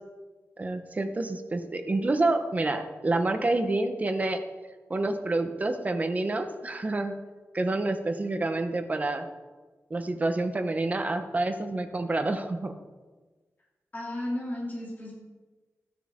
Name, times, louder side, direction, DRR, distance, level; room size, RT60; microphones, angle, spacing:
voice 1, 0.6-4.4 4.9-7.1 7.5-9.3 9.9-12.7, right 2 dB, 30° right, 7 dB, 0.9 m, -28 dB
voice 2, 13.9-15.1, left 1 dB, 30° left, -3 dB, 2.5 m, -33 dB
15.0 x 9.9 x 3.7 m, 1.3 s
wide cardioid pair, 165°, 5 cm